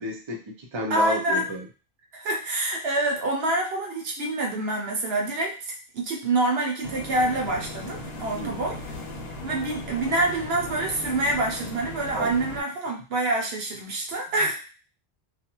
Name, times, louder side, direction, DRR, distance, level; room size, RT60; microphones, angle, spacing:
voice 1, 0.0-1.6 8.3-8.6 12.1-12.3, right 1 dB, 40° right, 1 dB, 0.5 m, -31 dB
voice 2, 0.9-1.4 2.1-8.8 9.4-14.5, right 2 dB, 75° right, 0 dB, 0.9 m, -26 dB
sound 1, 6.8-12.6, left 2 dB, 80° left, 0.9 m, -37 dB
2.5 x 2.3 x 2.9 m, 0.36 s
omnidirectional pair, 1.0 m